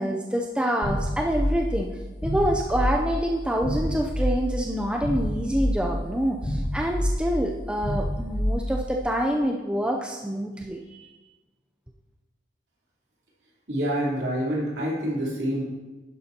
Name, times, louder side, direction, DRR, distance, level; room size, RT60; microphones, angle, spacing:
voice 1, 0.0-1.9 2.2-11.1, equal, 5° right, 0 dB, 0.5 m, -26 dB
sound 1, 0.8-9.1, equal, 40° left, 1.6 m, -28 dB
voice 2, 13.7-15.6, equal, 55° right, -6 dB, 3.5 m, -27 dB
11.5 x 10.5 x 2.9 m, 1.2 s
head